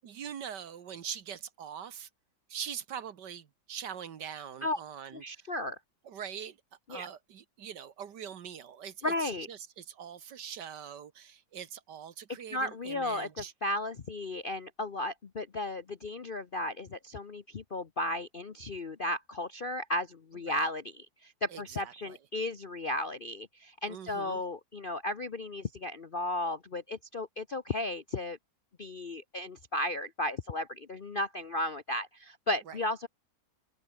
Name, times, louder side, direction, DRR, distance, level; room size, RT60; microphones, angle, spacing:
voice 1, 0.0-2.1 2.5-5.5 6.0-6.6 6.9-13.5 20.4-20.6 21.5-22.2 23.9-24.4 32.7-32.8, right 8 dB, 60° right, 1.8 m, -43 dB
voice 2, 5.1-5.8 6.9-7.1 9.0-9.5 12.5-13.3 13.6-28.4 28.8-33.1, left 1 dB, 40° left, 0.7 m, -34 dB
omnidirectional pair, 2.1 m